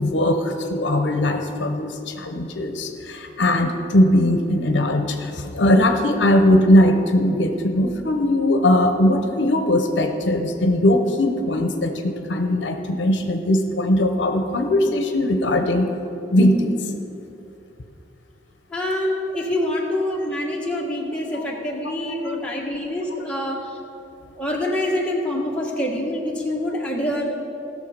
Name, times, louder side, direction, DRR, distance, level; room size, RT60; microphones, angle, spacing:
voice 1, 0.0-15.9 16.3-16.8 21.3-21.4 22.3-22.4, left 1 dB, 70° left, 5 dB, 0.8 m, -20 dB
voice 2, 18.7-23.8 24.4-27.3, left 1 dB, 5° left, -3 dB, 1.5 m, -25 dB
16.5 x 6.6 x 5.1 m, 2.9 s
head